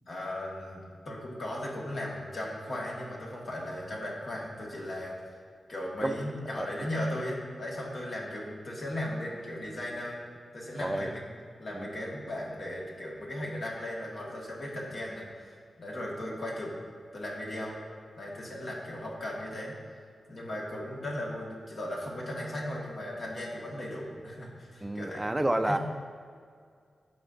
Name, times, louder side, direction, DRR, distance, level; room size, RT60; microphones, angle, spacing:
voice 1, 0.1-5.2 5.7-10.2 10.5-11.2 11.6-16.7 17.1-17.8 18.2-19.7 20.3-25.2 25.6-25.8, left 1 dB, 60° left, -3 dB, 1.6 m, -37 dB
voice 2, 10.8-11.2 11.7-11.9 24.8-25.8, right 1 dB, 15° right, 8 dB, 0.4 m, -29 dB
12.5 x 4.2 x 2.6 m, 2.1 s
cardioid pair, 65°, 0 cm